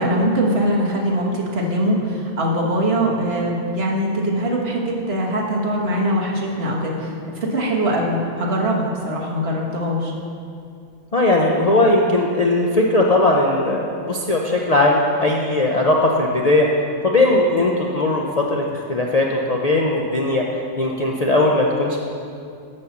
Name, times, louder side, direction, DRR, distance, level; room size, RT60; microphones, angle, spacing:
voice 1, 0.0-10.1, equal, 50° right, -3 dB, 1.6 m, -22 dB
voice 2, 11.1-16.7 17.0-20.5 20.8-22.0, left 2 dB, 40° left, -2 dB, 0.6 m, -18 dB
11.5 x 4.2 x 7.2 m, 2.4 s
omnidirectional pair, 1.3 m